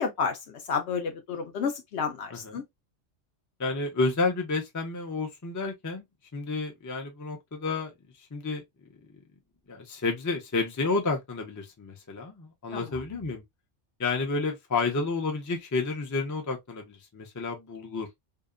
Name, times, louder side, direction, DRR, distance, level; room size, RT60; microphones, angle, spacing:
voice 1, 0.0-2.6 12.7-12.9, left 6 dB, 70° left, 0.9 m, -31 dB
voice 2, 2.3-2.6 3.6-6.0 6.3-7.9 8.2-8.6 9.1-9.2 9.7-13.4 14.0-18.1, left 3 dB, 25° left, 0.4 m, -30 dB
2.7 x 2.1 x 2.3 m
omnidirectional pair, 1.3 m